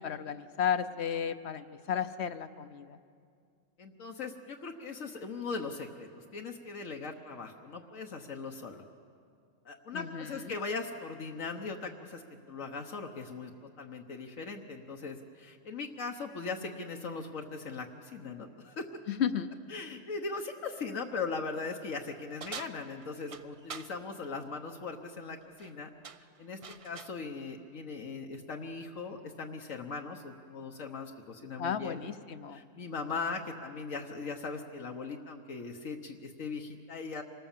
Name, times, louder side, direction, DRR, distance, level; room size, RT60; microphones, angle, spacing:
voice 1, 0.0-3.0 9.9-10.4 19.1-19.5 31.6-32.6, left 8 dB, 60° left, 11 dB, 1.0 m, -33 dB
voice 2, 3.8-8.8 9.6-18.9 19.7-25.9 26.4-32.0 32.5-37.2, left 4 dB, 80° left, 2 dB, 1.5 m, -39 dB
sound 1, 22.4-23.9 25.4-25.7 26.0-27.2, right 6 dB, 45° right, 0.4 m, -45 dB
25.5 x 19.0 x 7.3 m, 2.3 s
omnidirectional pair, 1.3 m